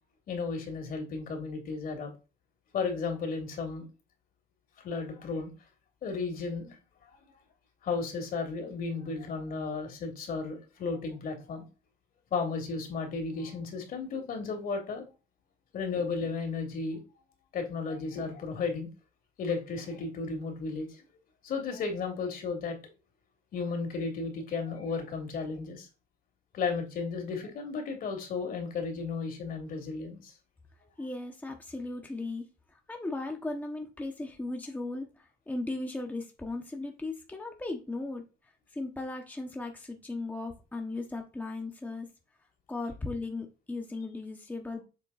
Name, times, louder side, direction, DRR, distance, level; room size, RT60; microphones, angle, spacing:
voice 1, 0.3-2.1 2.7-3.9 4.8-5.5 6.0-6.8 7.8-11.7 12.3-15.0 15.7-17.0 17.5-18.9 19.4-21.0 21.4-22.8 23.5-25.9 26.5-30.3, left 4 dB, 60° left, 2.7 m, -34 dB
voice 2, 31.0-38.2 38.7-42.1 42.7-44.8, left 2 dB, 10° left, 1.1 m, -37 dB
7.3 x 3.8 x 4.0 m
cardioid pair, 110°, 17 cm